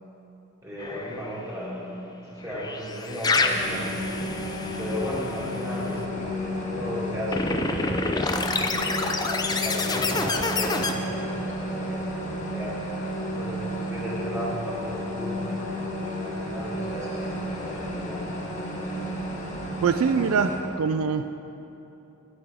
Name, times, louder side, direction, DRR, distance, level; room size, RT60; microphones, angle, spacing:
voice 1, 0.6-4.1 4.8-8.4 8.8-12.8 13.4-18.2, left 1 dB, 15° right, -7 dB, 2.1 m, -35 dB
sound 1, 0.8-1.4 2.4-5.6 7.3-10.9, left 3 dB, 20° left, 0.4 m, -28 dB
sound 2, 3.5-20.6, equal, 35° left, 1.3 m, -32 dB
voice 2, 19.8-20.5 20.8-21.3, right 6 dB, 80° right, 9 dB, 0.3 m, -23 dB
12.5 x 8.9 x 3.5 m, 2.9 s
head